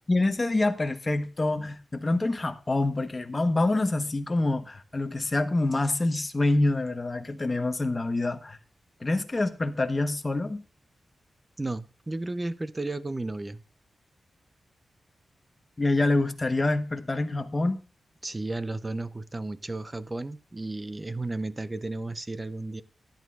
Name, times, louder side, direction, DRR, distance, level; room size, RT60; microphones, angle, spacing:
voice 1, 0.1-8.6 9.0-10.6 15.8-17.8, left 2 dB, 30° left, 1.1 m, -26 dB
voice 2, 11.6-13.6 18.2-22.8, right 2 dB, 25° right, 0.7 m, -33 dB
13.5 x 10.5 x 2.5 m
cardioid pair, 65°, 0 cm